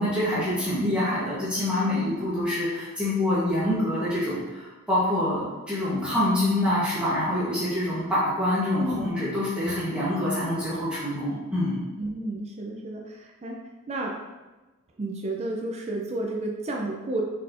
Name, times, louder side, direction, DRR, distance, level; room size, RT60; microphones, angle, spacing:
voice 1, 0.0-11.8, left 1 dB, 5° right, -12 dB, 1.1 m, -26 dB
voice 2, 0.7-1.0 8.8-9.1 12.0-13.6 13.9-14.1 15.0-17.2, right 2 dB, 30° right, 0 dB, 0.4 m, -31 dB
4.1 x 4.1 x 2.5 m, 1.2 s
head